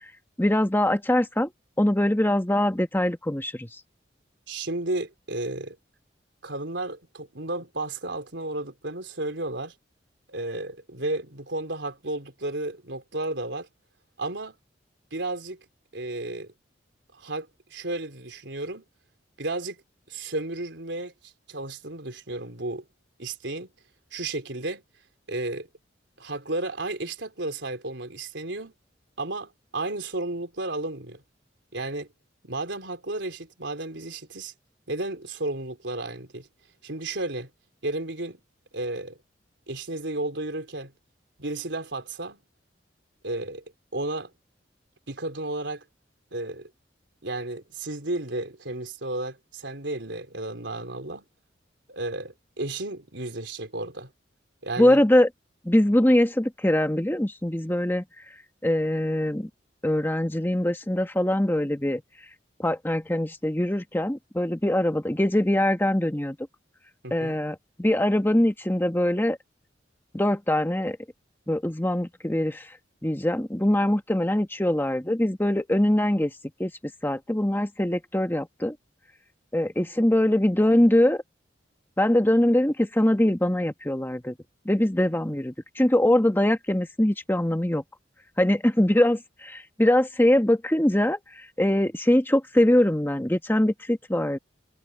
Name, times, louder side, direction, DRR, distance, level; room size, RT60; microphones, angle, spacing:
voice 1, 0.4-1.5 1.8-3.7 54.8-55.3 55.6-58.0 58.6-59.5 59.8-62.0 62.6-66.4 67.1-69.4 70.1-71.0 71.5-72.7 73.0-76.3 76.6-76.7 77.0-78.7 79.5-81.2 82.0-84.3 84.6-87.8 88.4-94.4, left 1 dB, 10° left, 1.3 m, -23 dB
voice 2, 4.5-5.8 6.4-9.7 10.3-13.7 14.2-14.6 15.1-15.6 15.9-16.5 17.1-18.8 19.4-19.8 20.1-22.9 23.2-23.7 24.1-24.8 25.3-25.7 26.2-28.7 29.2-31.2 31.7-32.1 32.4-34.5 34.9-36.5 36.8-37.5 37.8-38.4 38.7-39.2 39.7-40.9 41.4-42.4 43.2-43.6 43.9-44.3 45.1-45.8 46.3-46.7 47.2-51.3 51.9-54.1 54.6-55.0 67.0-67.4, right 2 dB, 70° right, 4.1 m, -33 dB
head